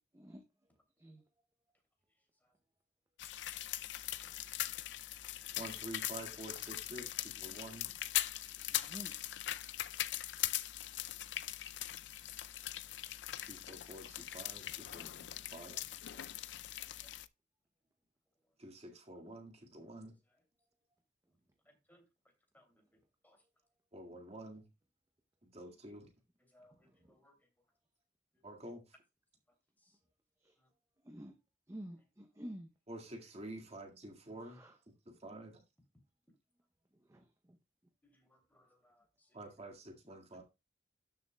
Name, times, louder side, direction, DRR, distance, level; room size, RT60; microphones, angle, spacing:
sound 1, 3.2-17.3, left 14 dB, 80° left, 0.4 m, -41 dB
voice 1, 5.2-7.9 13.4-15.2 15.5-15.8 18.6-20.2 23.9-24.7 25.4-26.1 28.4-29.0 32.9-34.6 35.1-35.6 39.3-40.4, right 1 dB, 35° right, 1.8 m, -49 dB
voice 2, 8.7-9.1 31.1-31.3 31.7-32.7 34.4-34.7 37.1-37.2, equal, 15° right, 0.7 m, -49 dB
voice 3, 26.5-27.3 38.0-39.0, left 1 dB, 10° left, 2.7 m, -67 dB
12.5 x 6.9 x 2.2 m
head